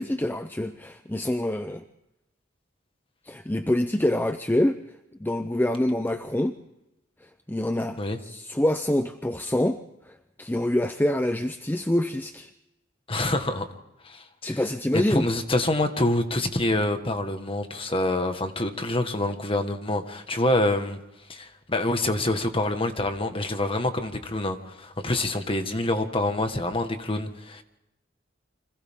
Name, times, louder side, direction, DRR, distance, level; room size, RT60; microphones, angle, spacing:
voice 1, 0.0-1.8 3.3-4.8 5.2-6.5 7.5-9.8 10.1-12.5 14.4-15.3, left 1 dB, 10° left, 0.7 m, -26 dB
voice 2, 13.1-13.7 14.0-14.6 14.9-21.0 21.3-27.6, left 1 dB, 30° left, 1.7 m, -26 dB
29.0 x 25.5 x 3.7 m
head